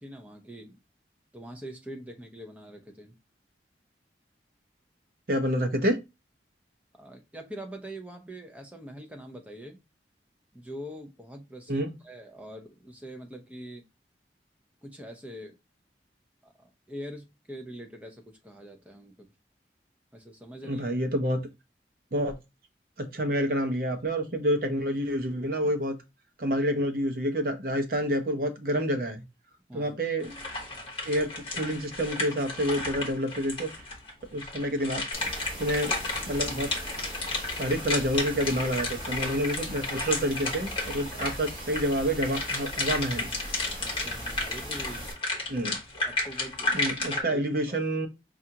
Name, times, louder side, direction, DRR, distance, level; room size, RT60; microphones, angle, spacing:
voice 1, 0.0-0.8 1.3-3.2 6.9-9.8 10.5-13.8 14.8-15.6 16.4-19.3 20.1-20.9 29.7-30.0 43.8-45.1 45.9-47.8, equal, 10° right, 3 dB, 0.6 m, -43 dB
voice 2, 5.3-6.0 11.7-11.9 20.6-21.4 22.1-22.3 23.1-25.9 26.4-29.2 29.7-30.4 31.1-33.7 34.3-35.0 35.6-35.9 36.3-36.7 37.6-43.3 43.8-43.9 45.5-45.8 46.7-48.1, equal, 55° right, 5 dB, 0.7 m, -28 dB
sound 1, 30.2-34.1 34.4-47.2, left 2 dB, 30° left, 1.0 m, -33 dB
sound 2, 35.1-45.1, equal, 30° right, 2.0 m, -40 dB
5.5 x 2.5 x 2.8 m, 0.24 s
head